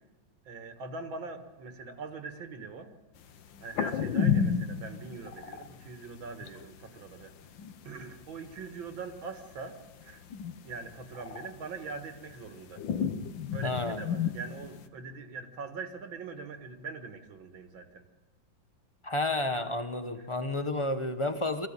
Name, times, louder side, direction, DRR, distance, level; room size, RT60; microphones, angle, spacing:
voice 1, 0.5-2.9 3.6-7.3 7.8-10.2 10.6-12.8 13.5-18.0, right 4 dB, 80° right, 7 dB, 2.4 m, -42 dB
sound 1, 3.5-5.9 6.1-6.2 6.5-6.8 7.2-7.7 8.0-9.3 9.7-10.7 11.0-12.5 12.8-14.8, left 7 dB, 80° left, 1.7 m, -31 dB
voice 2, 13.6-14.0 19.0-21.7, left 2 dB, 25° left, 9 dB, 0.6 m, -31 dB
23.5 x 15.0 x 8.8 m, 1.2 s
omnidirectional pair, 2.1 m